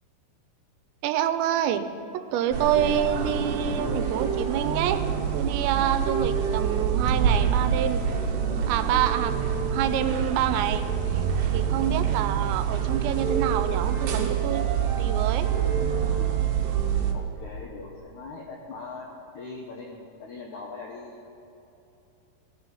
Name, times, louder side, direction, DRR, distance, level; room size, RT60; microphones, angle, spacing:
voice 1, 1.0-1.9 2.1-5.0 5.3-8.0 8.7-10.8 11.1-11.2 11.5-14.7 15.0-15.5, right 10 dB, 85° right, 10 dB, 2.9 m, -27 dB
sound 1, 2.5-17.1, right 7 dB, 65° right, 2.1 m, -26 dB
voice 2, 17.1-19.1 19.3-21.3, left 3 dB, 80° left, 0 dB, 1.7 m, -41 dB
17.0 x 13.0 x 5.5 m, 2.9 s
omnidirectional pair, 5.2 m